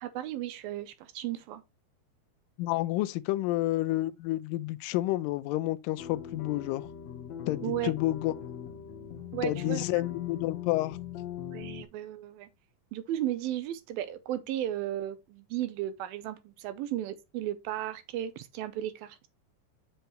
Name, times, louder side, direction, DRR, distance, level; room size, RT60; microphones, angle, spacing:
voice 1, 0.0-1.6 7.6-7.9 9.3-9.8 11.5-12.5 12.9-19.3, right 12 dB, 80° right, 2.3 m, -35 dB
voice 2, 2.6-6.9 7.5-8.3 9.4-11.0, left 17 dB, 85° left, 2.0 m, -30 dB
sound 1, 6.0-11.8, left 10 dB, 65° left, 1.8 m, -40 dB
7.9 x 5.7 x 3.0 m
omnidirectional pair, 4.6 m